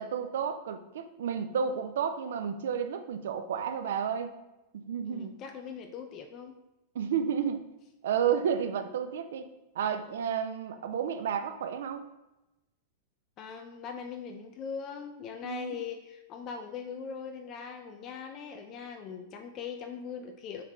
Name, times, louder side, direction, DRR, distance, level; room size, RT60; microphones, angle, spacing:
voice 1, 0.0-4.4 4.7-5.4 6.9-7.6 8.0-12.1 15.4-15.8, right 7 dB, 60° right, 8 dB, 0.3 m, -31 dB
voice 2, 5.1-6.5 13.4-20.6, left 6 dB, 35° left, 5 dB, 0.3 m, -40 dB
3.7 x 3.5 x 3.0 m, 0.98 s
figure-of-eight pair, 90°, 0 cm